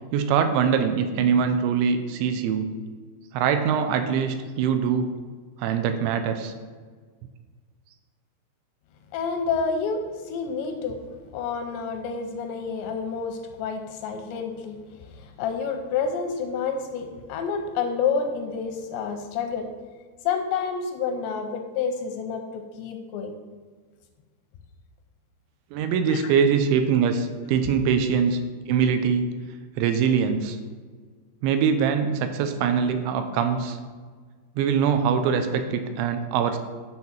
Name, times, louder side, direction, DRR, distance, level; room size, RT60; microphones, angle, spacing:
voice 1, 0.1-2.7 3.3-5.1 5.6-6.5 25.7-28.4 28.7-29.3 29.8-30.6 31.4-33.8 34.6-36.6, right 7 dB, 85° right, 7 dB, 2.9 m, -23 dB
voice 2, 9.1-11.0 11.3-14.8 15.1-19.7 20.2-23.4 26.1-26.3, left 5 dB, 85° left, 5 dB, 2.7 m, -29 dB
10.5 x 4.2 x 7.1 m, 1.5 s
omnidirectional pair, 5.4 m